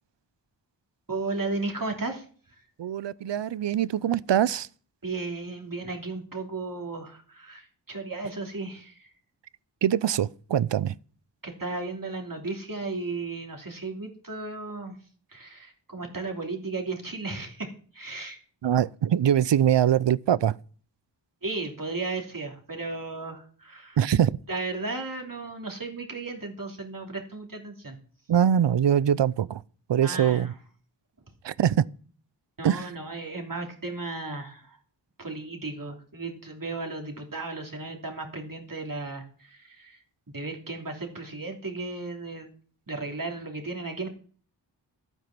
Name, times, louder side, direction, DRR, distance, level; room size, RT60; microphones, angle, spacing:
voice 1, 1.1-2.2 5.0-9.1 11.4-14.9 15.3-18.4 21.4-24.0 24.5-28.0 30.0-30.6 32.6-34.8 35.2-40.0 40.3-42.5 42.9-44.1, right 3 dB, 50° right, 2.9 m, -35 dB
voice 2, 2.8-4.7 9.8-10.9 18.6-20.6 24.0-24.4 28.3-29.6 29.9-30.5 31.4-31.8 32.6-32.9, right 9 dB, 75° right, 0.6 m, -23 dB
12.5 x 9.1 x 6.0 m
wide cardioid pair, 55°, 44 cm